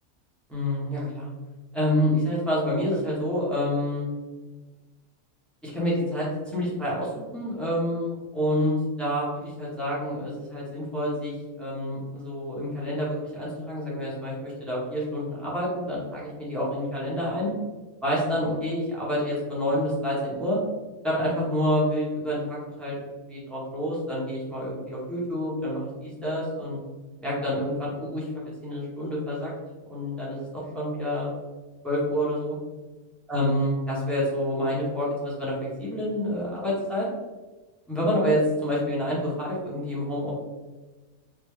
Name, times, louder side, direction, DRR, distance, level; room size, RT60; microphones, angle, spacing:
voice 1, 0.5-1.3 1.7-4.0 5.6-11.3 11.6-17.5 18.0-20.6 21.0-23.0 23.3-26.8 27.2-28.3 28.6-29.5 29.9-31.3 31.8-32.6 33.3-35.5 35.8-37.1 37.9-40.3, equal, ahead, -7 dB, 0.7 m, -28 dB
3.4 x 2.7 x 3.2 m, 1.3 s
omnidirectional pair, 1.7 m